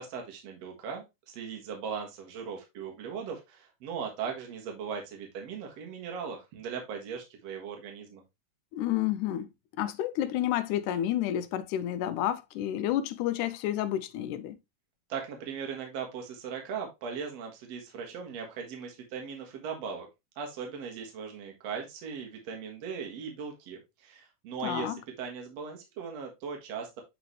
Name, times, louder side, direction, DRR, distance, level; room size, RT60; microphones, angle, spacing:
voice 1, 0.0-8.2 15.1-20.1 20.4-27.0, right 6 dB, 60° right, 2.5 m, -39 dB
voice 2, 8.7-9.5 9.8-14.6 24.6-25.0, left 12 dB, 80° left, 2.1 m, -30 dB
8.3 x 3.9 x 3.1 m
omnidirectional pair, 3.7 m